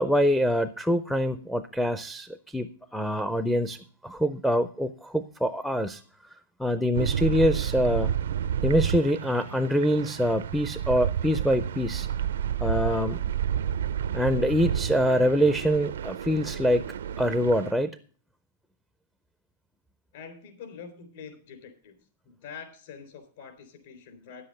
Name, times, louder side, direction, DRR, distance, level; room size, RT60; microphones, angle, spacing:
voice 1, 0.0-3.8 4.0-6.0 6.6-8.1 8.6-12.1 12.6-13.2 14.1-16.9 17.2-17.9, equal, ahead, 10 dB, 0.4 m, -25 dB
sound 1, 6.9-17.7, right 9 dB, 85° right, 0.5 m, -30 dB
voice 2, 20.1-22.0 22.3-24.5, left 6 dB, 55° left, 8 dB, 3.6 m, -45 dB
10.0 x 7.7 x 6.5 m, 0.43 s
supercardioid pair, 155°, 0 cm